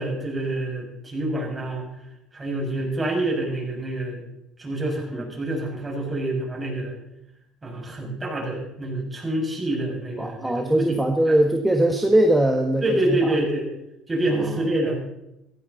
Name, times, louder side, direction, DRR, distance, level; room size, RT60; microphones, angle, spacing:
voice 1, 0.0-1.9 2.3-4.2 4.6-6.9 7.6-11.4 12.8-13.7 14.1-15.0, right 1 dB, 25° right, -1 dB, 6.8 m, -27 dB
voice 2, 10.2-13.2, right 1 dB, 5° right, 3 dB, 1.6 m, -20 dB
16.0 x 15.5 x 4.2 m, 0.86 s
supercardioid pair, 85°, 0 cm